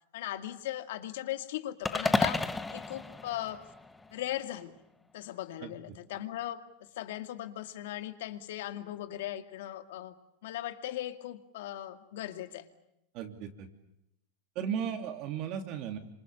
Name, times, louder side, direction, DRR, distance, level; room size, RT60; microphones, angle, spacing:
voice 1, 0.1-2.5 2.7-3.7 4.1-4.8 5.1-10.2 10.4-12.7, left 13 dB, 70° left, 8 dB, 2.3 m, -38 dB
sound 1, 1.8-4.2, left 3 dB, 10° left, 0.9 m, -32 dB
voice 2, 13.1-13.7 14.5-16.0, right 8 dB, 40° right, 6 dB, 3.0 m, -35 dB
28.0 x 26.5 x 7.0 m, 0.81 s
supercardioid pair, 160°, 0 cm